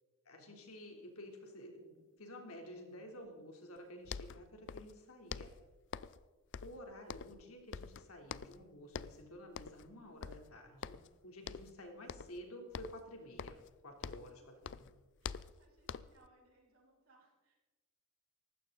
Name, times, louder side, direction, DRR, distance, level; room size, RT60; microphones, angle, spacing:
voice 1, 0.2-5.5 6.6-11.0 11.2-13.6 13.8-15.0, equal, 80° left, 2 dB, 3.3 m, -52 dB
sound 1, 3.8-3.9 4.1-5.0 5.3-6.3 6.5-7.5 7.7-8.6 8.9-9.2 9.6-9.9 10.2-11.1 11.5-11.8 12.1-12.4 12.7-14.4 14.6-16.3, left 6 dB, 55° left, 0.5 m, -46 dB
voice 2, 15.2-17.6, right 2 dB, 70° right, -3 dB, 6.4 m, -69 dB
19.0 x 15.5 x 4.0 m, 1.2 s
head